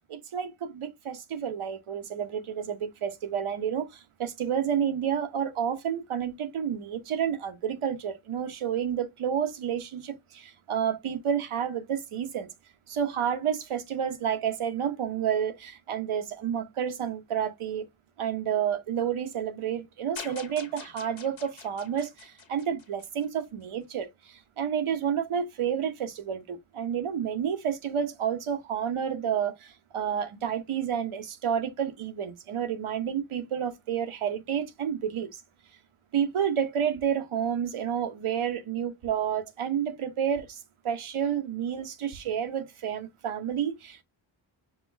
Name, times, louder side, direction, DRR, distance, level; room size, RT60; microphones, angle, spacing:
voice 1, 0.1-12.5 12.9-17.9 18.2-35.4 36.1-40.6 40.8-44.0, right 8 dB, 90° right, 1.0 m, -30 dB
sound 1, 20.2-23.4, left 6 dB, 75° left, 1.2 m, -45 dB
5.9 x 2.4 x 3.3 m
wide cardioid pair, 75°, 48 cm